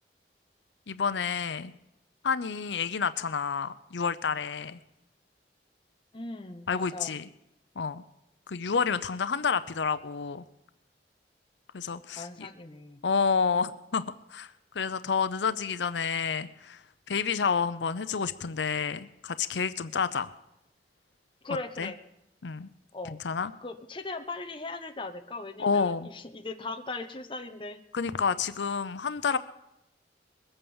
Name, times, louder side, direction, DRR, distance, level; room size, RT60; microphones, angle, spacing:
voice 1, 0.9-1.7 2.2-4.8 6.7-7.3 7.8-8.0 8.5-10.4 11.7-12.5 13.0-14.0 14.3-20.3 21.8-21.9 22.4-22.7 23.2-23.5 25.6-26.1 27.9-29.4, left 5 dB, 85° left, 13 dB, 0.6 m, -29 dB
voice 2, 6.1-7.2 12.2-13.0 21.4-22.0 22.9-23.2 23.6-27.8, left 3 dB, 30° left, 7 dB, 1.0 m, -39 dB
21.5 x 8.9 x 7.1 m, 0.88 s
head